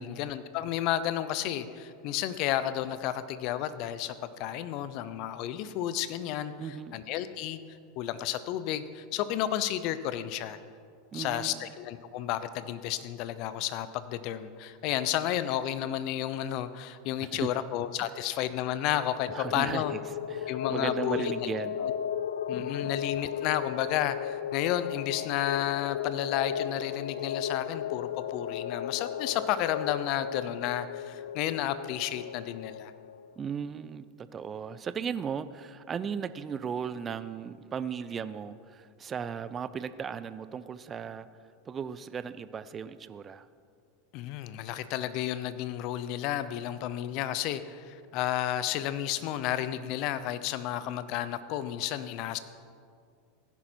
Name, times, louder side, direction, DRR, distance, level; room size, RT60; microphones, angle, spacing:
voice 1, 0.0-7.6 8.0-10.6 11.1-19.9 20.5-21.5 21.8-21.9 22.5-32.9 44.1-52.4, left 12 dB, 55° left, 14 dB, 0.8 m, -32 dB
voice 2, 6.6-7.0 11.1-11.6 17.2-17.5 18.0-18.1 19.3-20.0 20.3-21.8 22.6-22.9 33.4-41.3 41.7-43.5, right 7 dB, 30° right, 14 dB, 0.6 m, -36 dB
sound 1, 19.0-33.3, left 9 dB, 80° left, 0.3 m, -35 dB
16.0 x 11.0 x 4.6 m, 2.3 s
hypercardioid pair, 95°, 0 cm